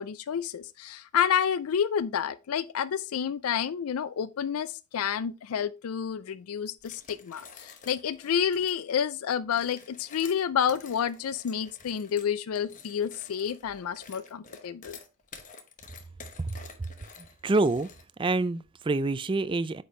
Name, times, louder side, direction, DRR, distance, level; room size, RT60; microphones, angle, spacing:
voice 1, 0.0-15.0, left 8 dB, 80° left, 0.4 m, -29 dB
sound 1, 6.8-8.8 9.4-18.3, left 5 dB, 35° left, 0.9 m, -50 dB
voice 2, 17.4-17.9 18.2-19.8, right 2 dB, 25° right, 0.3 m, -26 dB
8.5 x 5.2 x 3.1 m
head